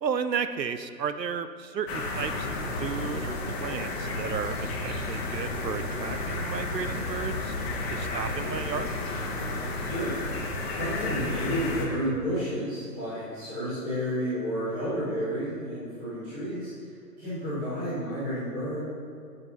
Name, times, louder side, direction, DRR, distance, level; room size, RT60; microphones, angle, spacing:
voice 1, 0.0-7.5 7.9-8.9, right 6 dB, 75° right, 11 dB, 0.8 m, -33 dB
sound 1, 1.9-11.9, left 2 dB, 35° left, 1.6 m, -32 dB
voice 2, 9.9-10.3 10.8-18.8, equal, ahead, -14 dB, 0.5 m, -31 dB
8.9 x 6.5 x 5.7 m, 2.2 s
figure-of-eight pair, 135°, 50 cm